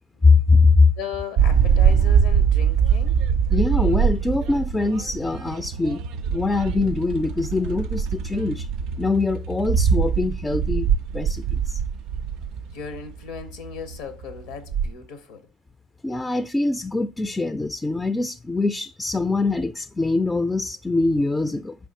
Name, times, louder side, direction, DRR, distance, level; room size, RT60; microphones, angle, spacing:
voice 1, 0.2-0.9 3.5-6.0 6.3-8.7 9.0-10.9 11.1-11.8 16.0-21.8, left 3 dB, 15° left, 0.3 m, -22 dB
voice 2, 1.0-3.2 12.7-15.5, left 6 dB, 85° left, 0.7 m, -36 dB
sound 1, 1.4-14.9, right 7 dB, 70° right, 0.3 m, -22 dB
4.5 x 3.4 x 2.7 m
supercardioid pair, 80°, 0 cm